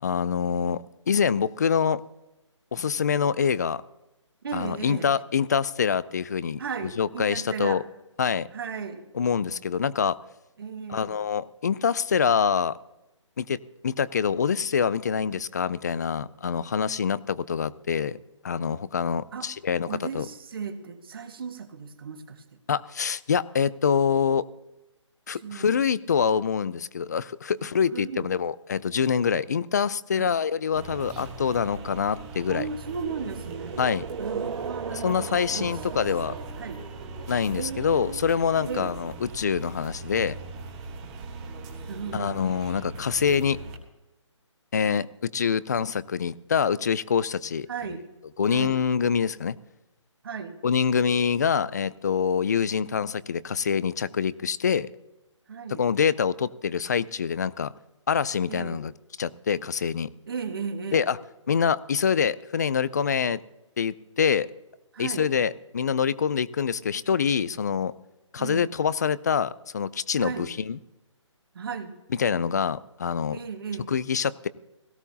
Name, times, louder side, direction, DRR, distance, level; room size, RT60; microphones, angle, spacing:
voice 1, 0.0-2.0 2.7-3.8 4.5-7.8 8.2-8.5 9.1-10.2 10.9-12.8 13.4-18.2 18.4-19.9 20.1-20.3 22.7-24.5 25.3-32.7 33.8-34.0 34.9-36.3 37.3-40.4 42.1-43.6 44.7-47.7 48.4-49.6 50.6-54.9 55.7-57.7 58.1-58.9 59.2-60.1 60.9-61.2 61.5-63.4 63.8-64.5 65.0-67.9 68.3-70.8 72.1-73.4 73.9-74.5, left 7 dB, 35° left, 19 dB, 0.4 m, -25 dB
voice 2, 4.4-5.1 6.6-7.8 8.5-9.0 10.6-11.2 19.3-19.5 19.9-22.4 25.3-25.8 27.9-28.3 30.2-30.3 32.5-33.8 34.2-36.0 36.3-36.8 37.5-38.2 38.6-38.9 41.9-42.8 47.7-48.0 48.5-48.8 50.2-50.6 55.5-55.9 58.5-58.8 60.3-61.1 64.9-65.3 68.4-68.7 70.2-70.5 71.5-71.9 73.3-73.9, right 6 dB, 45° right, 6 dB, 1.7 m, -35 dB
sound 1, 30.8-43.8, right 3 dB, 15° right, 1.2 m, -40 dB
sound 2, 32.8-37.8, right 6 dB, 90° right, 0.5 m, -38 dB
17.5 x 15.0 x 2.8 m, 0.96 s
hypercardioid pair, 165°, 16 cm